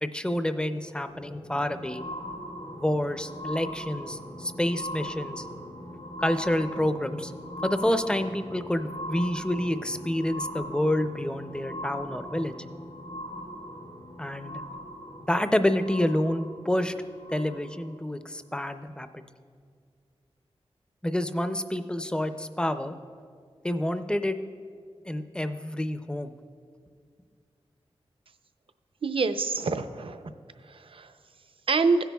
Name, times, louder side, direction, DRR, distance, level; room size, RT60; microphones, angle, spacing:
voice 1, 0.0-2.0 2.8-5.5 6.2-7.3 7.6-12.5 14.2-14.6 15.3-16.9 17.3-19.2 21.0-22.9 23.6-24.4 25.1-26.3, left 1 dB, 10° left, 9 dB, 0.5 m, -28 dB
sound 1, 1.1-17.9 18.7-18.8, equal, 90° left, 1.9 m, -40 dB
voice 2, 29.0-30.3 30.7-31.1 31.7-32.0, right 4 dB, 60° right, 10 dB, 0.5 m, -26 dB
16.0 x 10.5 x 2.3 m, 2.1 s
wide cardioid pair, 90°, 11 cm